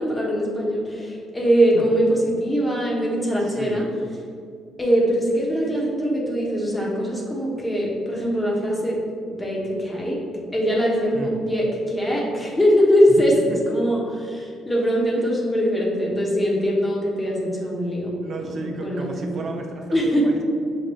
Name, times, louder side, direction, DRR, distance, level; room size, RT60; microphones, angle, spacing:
voice 1, 0.0-3.9 4.8-9.0 9.4-10.2 10.5-18.1 18.4-19.4 19.9-20.3, equal, 15° left, -3 dB, 1.1 m, -22 dB
voice 2, 3.3-3.9 11.1-11.4 13.1-13.6 15.1-15.3 18.2-20.4, right 3 dB, 55° right, 3 dB, 0.6 m, -34 dB
6.0 x 2.5 x 3.1 m, 2.3 s
supercardioid pair, 65°, 0 cm